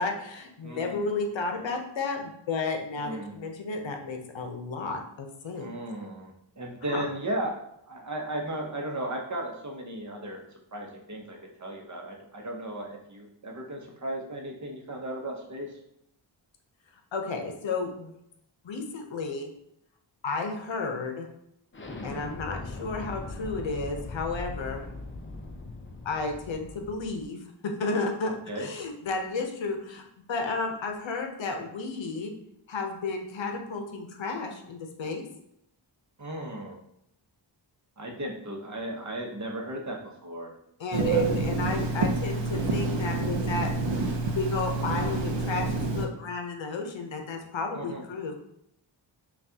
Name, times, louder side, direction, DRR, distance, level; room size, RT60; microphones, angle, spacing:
voice 1, 0.0-5.7 6.9-7.0 17.1-18.2 18.6-19.5 20.2-21.3 22.0-24.9 26.0-27.4 27.6-32.3 32.7-35.2 40.8-43.7 44.4-48.4, left 3 dB, 75° left, 4 dB, 0.7 m, -32 dB
voice 2, 0.6-1.0 3.0-3.3 5.5-10.4 10.7-15.8 28.2-28.7 36.2-36.8 38.0-40.5 41.1-41.2 47.7-48.0, right 1 dB, 40° right, 1 dB, 0.8 m, -36 dB
Explosion, 21.7-27.3, left 2 dB, 25° left, 0.6 m, -40 dB
Telephone, 40.9-46.1, right 3 dB, 70° right, 0.7 m, -28 dB
5.7 x 2.4 x 2.8 m, 0.76 s
wide cardioid pair, 95°, 46 cm